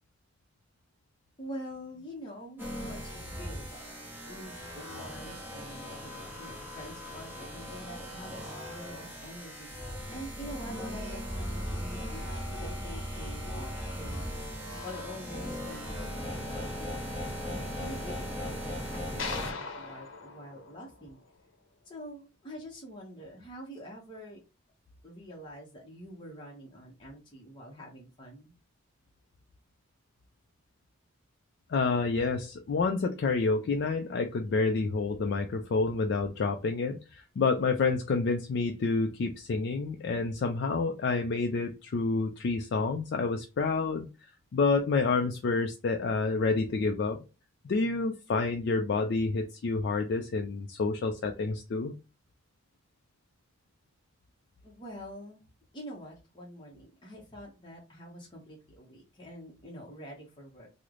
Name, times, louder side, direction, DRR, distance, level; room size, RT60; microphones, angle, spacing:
voice 1, 1.4-14.5 14.8-21.2 21.8-24.4 25.0-28.5 54.6-55.4 55.7-60.7, equal, 25° left, -3 dB, 0.7 m, -46 dB
sound 1, 2.6-19.5, equal, 10° right, 0.9 m, -38 dB
sound 2, 19.2-21.5, left 4 dB, 75° left, 0.7 m, -40 dB
voice 2, 31.7-44.1 44.5-47.2 47.6-51.9, left 4 dB, 55° left, 4 dB, 0.3 m, -28 dB
3.1 x 2.0 x 3.6 m, 0.30 s
head